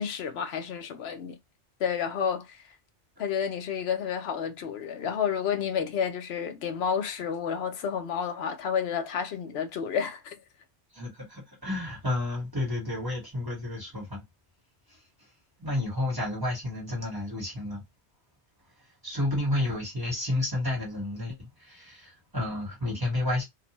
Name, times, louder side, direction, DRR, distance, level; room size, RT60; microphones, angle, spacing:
voice 1, 0.0-1.4 1.8-2.6 3.2-10.3, left 7 dB, 65° left, 0.8 m, -30 dB
voice 2, 10.9-14.2 14.9-15.0 15.6-17.8 19.0-23.4, left 1 dB, 20° right, 1.0 m, -31 dB
2.5 x 2.1 x 2.8 m
omnidirectional pair, 1.2 m